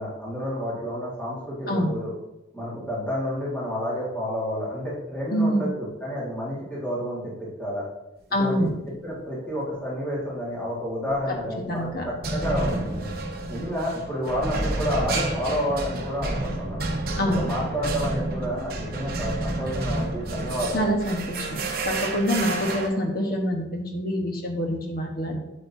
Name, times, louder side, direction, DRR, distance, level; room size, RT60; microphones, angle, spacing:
voice 1, 0.0-2.1 2.5-7.8 8.4-8.7 9.0-13.1 13.5-16.8 17.2-21.0, equal, 5° left, -8 dB, 2.0 m, -30 dB
voice 2, 5.3-5.7 8.3-8.7 11.3-12.1 17.2-17.5 20.7-25.4, equal, 50° left, 2 dB, 1.3 m, -26 dB
sound 1, 11.1-11.4 12.2-22.9, right 2 dB, 50° right, 0.9 m, -30 dB
8.1 x 7.8 x 2.8 m, 0.95 s
head